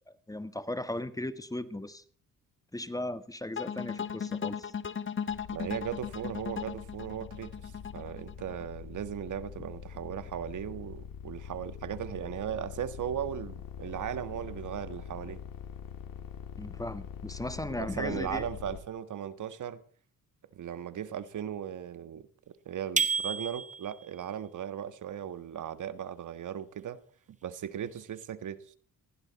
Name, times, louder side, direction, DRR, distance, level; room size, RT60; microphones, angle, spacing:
voice 1, 0.3-2.0 2.7-4.7 16.6-18.4, left 1 dB, 10° left, 1.4 m, -37 dB
sound 1, 3.6-8.7, left 7 dB, 35° left, 1.2 m, -36 dB
sound 2, 5.3-18.8, left 7 dB, 90° left, 2.7 m, -44 dB
voice 2, 5.5-15.4 17.7-19.8 20.5-22.3 22.6-27.0 27.4-28.6, right 9 dB, 65° right, 1.6 m, -37 dB
sound 3, 23.0-24.1, right 5 dB, 20° right, 1.5 m, -30 dB
20.0 x 16.0 x 4.2 m
cardioid pair, 90°, 33 cm